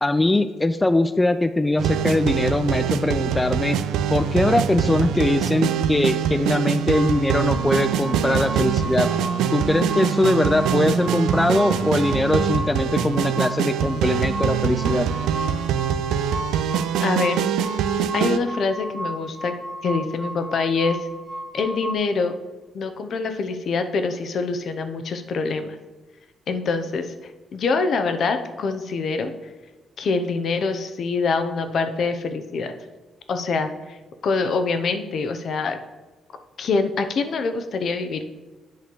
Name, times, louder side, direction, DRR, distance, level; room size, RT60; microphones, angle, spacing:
voice 1, 0.0-3.8 4.1-9.1 9.5-15.1, left 2 dB, 15° left, 10 dB, 0.3 m, -21 dB
sound 1, 1.8-18.4, right 8 dB, 85° right, 0.3 m, -24 dB
sound 2, 6.9-22.0, right 1 dB, 30° right, 1.0 m, -34 dB
voice 2, 17.0-17.4 18.1-19.5 19.8-21.0 21.5-22.3 22.7-25.8 26.5-29.5 30.0-32.7 33.3-34.0 34.2-35.8 36.6-38.2, left 4 dB, 60° left, 8 dB, 0.7 m, -25 dB
8.4 x 3.2 x 6.1 m, 1.2 s
cardioid pair, 90°, 0 cm